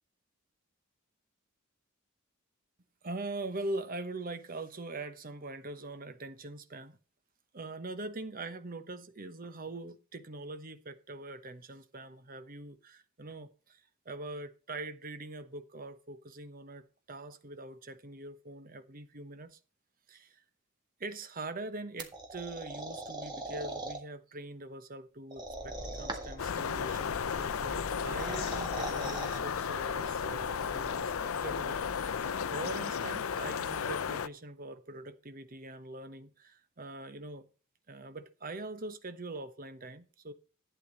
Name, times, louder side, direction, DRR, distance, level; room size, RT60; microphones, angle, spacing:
voice 1, 3.0-7.0 7.5-19.6 20.1-20.4 21.0-37.5 37.9-40.3, right 2 dB, 40° right, 1.0 m, -43 dB
sound 1, 22.0-24.0 25.3-26.5 27.9-29.4, right 2 dB, 20° right, 1.7 m, -40 dB
sound 2, 25.4-32.7, left 1 dB, 20° left, 1.8 m, -48 dB
sound 3, 26.4-34.3, left 7 dB, 75° left, 0.5 m, -34 dB
12.0 x 8.9 x 4.0 m
head